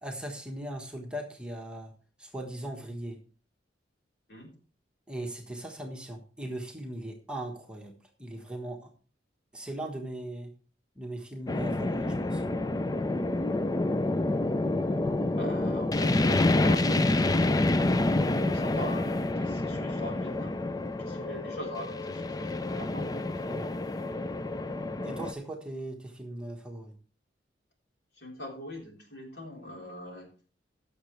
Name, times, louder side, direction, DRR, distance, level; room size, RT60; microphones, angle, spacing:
voice 1, 0.0-1.9 2.2-3.2 5.1-7.9 8.2-8.9 9.5-10.5 10.9-12.4 23.5-24.0 25.0-26.9, right 1 dB, 5° right, 1 dB, 1.3 m, -39 dB
sound 1, 11.5-25.3, left 2 dB, 20° left, 0.4 m, -28 dB
voice 2, 15.3-17.8 18.2-20.6 21.0-22.2 22.6-23.3 28.2-30.3, left 1 dB, 65° left, -1 dB, 4.1 m, -42 dB
17.0 x 6.8 x 3.3 m, 0.38 s
head